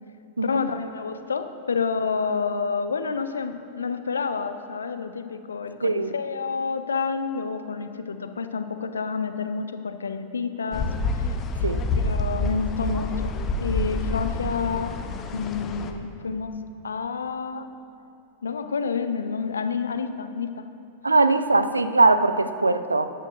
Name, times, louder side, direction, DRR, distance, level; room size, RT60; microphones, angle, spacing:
voice 1, 0.4-11.3 12.0-15.0 15.3-16.5 16.8-17.7 18.4-20.7, left 5 dB, 70° left, 10 dB, 0.5 m, -29 dB
voice 2, 5.8-6.1 11.6-11.8 21.0-23.1, right 3 dB, 80° right, 12 dB, 0.4 m, -20 dB
sound 1, 10.7-15.9, left 2 dB, 30° left, 0.7 m, -28 dB
15.0 x 11.0 x 2.6 m, 2.9 s
figure-of-eight pair, 90°, 0 cm